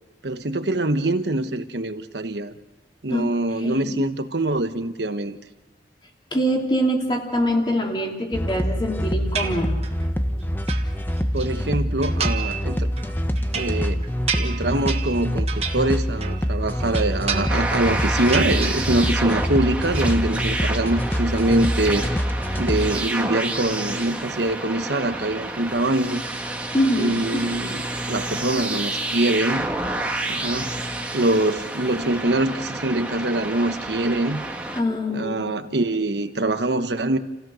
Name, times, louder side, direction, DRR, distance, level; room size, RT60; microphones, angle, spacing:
voice 1, 0.2-2.5 3.0-5.4 11.3-12.9 13.5-14.1 14.3-22.1 22.6-26.2 27.0-29.7 30.3-30.8 31.1-34.5 35.1-37.2, right 2 dB, 80° right, 9 dB, 1.2 m, -24 dB
voice 2, 3.1-4.0 6.3-9.8 26.7-27.4 34.7-35.7, equal, 25° left, 1 dB, 2.9 m, -24 dB
sound 1, 8.3-22.9, equal, 10° left, 0.9 m, -25 dB
sound 2, 9.4-10.1 10.4-11.5 12.0-12.7 13.0-16.5 16.8-17.9 18.2-19.2 19.5-20.1, right 7 dB, 35° right, 1.5 m, -31 dB
sound 3, 17.5-34.8, right 2 dB, 10° right, 1.4 m, -29 dB
29.5 x 16.5 x 6.4 m, 1.1 s
head